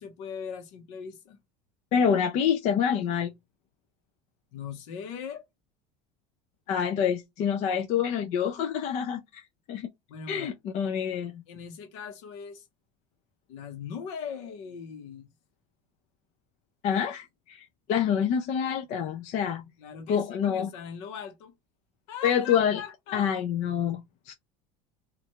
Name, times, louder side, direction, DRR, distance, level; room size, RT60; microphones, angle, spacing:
voice 1, 0.0-1.4 4.5-5.4 10.1-10.5 11.5-12.7 13.5-15.3 19.8-21.5 22.1-23.3, left 7 dB, 80° left, 1.1 m, -40 dB
voice 2, 1.9-3.3 6.7-9.4 9.7-9.9 10.3-11.4 16.8-19.7 20.1-20.7 22.2-22.8 23.1-24.3, left 8 dB, 45° left, 0.5 m, -27 dB
3.1 x 2.6 x 4.4 m
cardioid pair, 165°, 16 cm